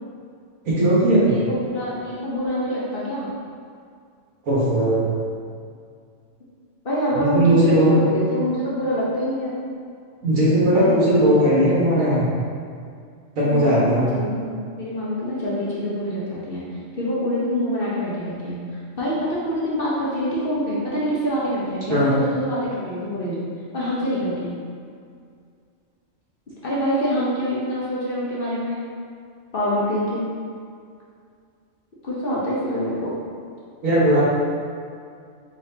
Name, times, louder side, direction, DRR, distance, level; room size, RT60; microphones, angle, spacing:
voice 1, 0.6-1.3 4.5-5.1 7.2-7.9 10.2-12.2 13.4-14.0 21.9-22.1 33.8-34.2, right 1 dB, 75° right, -8 dB, 1.6 m, -18 dB
voice 2, 1.2-3.3 6.8-9.5 10.7-11.5 13.4-14.4 14.8-24.6 26.6-28.8 29.5-30.2 32.0-33.2, equal, 45° left, -7 dB, 1.0 m, -25 dB
4.2 x 4.1 x 2.7 m, 2.3 s
omnidirectional pair, 1.4 m